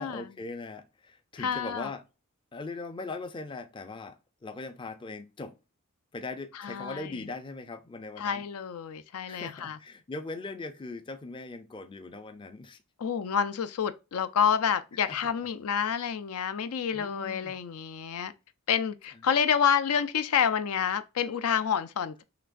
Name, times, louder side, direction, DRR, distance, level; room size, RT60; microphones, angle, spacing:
voice 1, 0.0-2.0 2.5-5.6 6.1-8.4 9.3-12.8 15.1-15.2 16.9-17.6, left 3 dB, 20° left, 0.4 m, -40 dB
voice 2, 1.4-1.9 6.6-7.2 8.2-9.8 13.0-18.3 18.7-22.2, left 7 dB, 75° left, 0.5 m, -28 dB
5.8 x 3.3 x 2.5 m
head